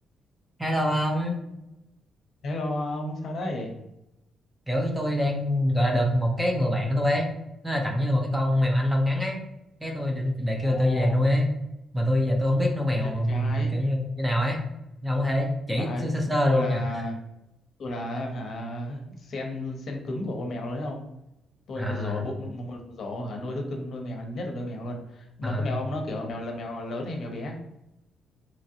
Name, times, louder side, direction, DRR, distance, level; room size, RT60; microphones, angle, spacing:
voice 1, 0.6-1.4 4.7-7.3 7.6-9.4 9.8-11.5 11.9-14.6 15.0-16.8 21.8-22.2 25.4-25.7, left 1 dB, 5° right, 1 dB, 0.5 m, -25 dB
voice 2, 2.4-3.8 8.5-8.7 10.6-11.2 13.0-13.7 15.8-16.0 16.4-17.2 17.8-21.1 21.7-27.6, left 1 dB, 55° left, 2 dB, 0.7 m, -33 dB
3.0 x 2.5 x 2.7 m, 0.87 s
cardioid pair, 140°, 0 cm